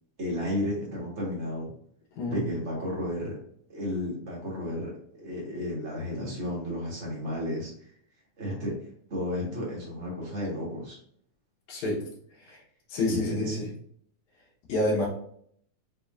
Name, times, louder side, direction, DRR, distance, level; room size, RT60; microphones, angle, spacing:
voice 1, 0.2-1.7 2.3-3.4 3.7-7.7 8.4-8.7 9.1-11.0 12.5-12.6 13.0-13.7, left 1 dB, 35° right, -4 dB, 1.3 m, -33 dB
voice 2, 11.7-12.1 12.5-12.6 12.9-13.7 14.7-15.1, left 1 dB, 85° left, -4 dB, 2.5 m, -28 dB
6.2 x 3.2 x 2.5 m, 0.66 s
omnidirectional pair, 3.3 m